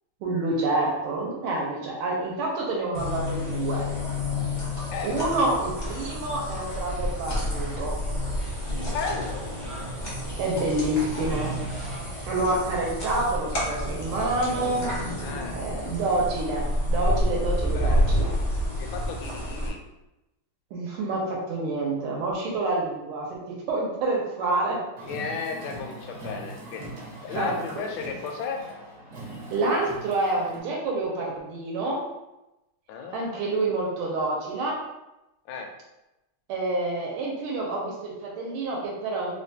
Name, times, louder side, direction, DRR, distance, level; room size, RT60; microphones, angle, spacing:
voice 1, 0.2-3.8 5.0-8.0 10.4-11.6 12.3-14.9 15.5-18.3 20.7-24.8 27.4-27.5 29.5-32.0 33.1-34.8 36.5-39.4, right 2 dB, 85° right, -2 dB, 1.5 m, -28 dB
sound 1, 2.9-19.7, left 1 dB, 45° left, 0.5 m, -29 dB
voice 2, 4.9-5.2 8.9-9.4 15.2-15.6 17.7-18.1 18.8-19.8 25.0-26.8 27.2-28.6 32.9-33.7 35.5-35.7, left 5 dB, 75° left, 2 dB, 1.2 m, -34 dB
sound 2, 6.6-12.3, equal, 30° right, 0.6 m, -47 dB
Car, 25.0-30.6, right 2 dB, 55° right, 1.0 m, -41 dB
3.7 x 2.2 x 2.7 m, 0.95 s
omnidirectional pair, 2.4 m